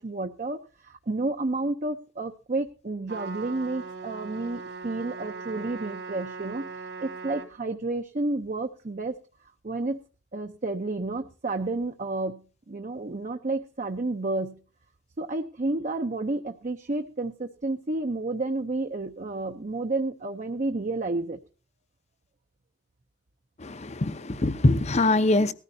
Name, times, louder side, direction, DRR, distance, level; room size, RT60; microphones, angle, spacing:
voice 1, 0.0-6.7 7.0-9.2 9.6-10.0 10.3-12.4 12.7-14.6 15.2-21.4, right 2 dB, 45° right, 0.7 m, -31 dB
Trumpet, 3.1-7.5, right 4 dB, 75° right, 3.0 m, -39 dB
voice 2, 23.6-25.5, left 2 dB, 40° left, 0.8 m, -23 dB
19.0 x 13.5 x 2.7 m
head